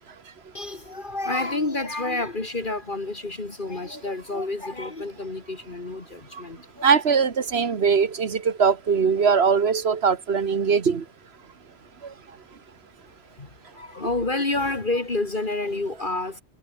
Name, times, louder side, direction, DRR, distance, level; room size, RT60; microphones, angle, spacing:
voice 1, 0.5-6.9 13.4-16.4, left 2 dB, 50° left, 2.5 m, -29 dB
voice 2, 6.8-11.0 12.0-12.1, right 6 dB, 65° right, 1.6 m, -21 dB
omnidirectional pair, 1.1 m